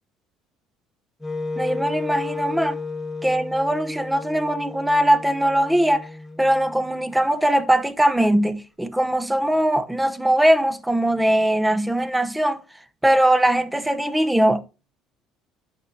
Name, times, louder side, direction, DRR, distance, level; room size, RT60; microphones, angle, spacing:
Wind instrument woodwind instrument, 1.2-7.3, left 3 dB, 10° left, 1.4 m, -33 dB
voice 1, 1.6-2.8 3.2-6.1 6.4-12.6 13.0-14.6, right 1 dB, 5° right, 0.7 m, -20 dB
10.5 x 5.9 x 2.7 m
supercardioid pair, 90°, 0 cm